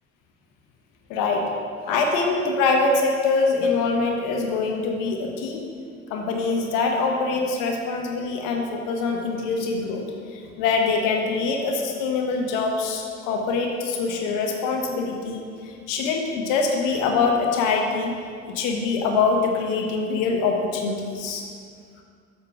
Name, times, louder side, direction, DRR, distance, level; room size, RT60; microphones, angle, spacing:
voice 1, 1.1-1.5 1.9-5.6 6.1-10.1 10.3-18.1 18.5-21.4, left 4 dB, 70° left, 2 dB, 1.0 m, -24 dB
7.8 x 4.3 x 5.8 m, 2.2 s
hypercardioid pair, 50°, 33 cm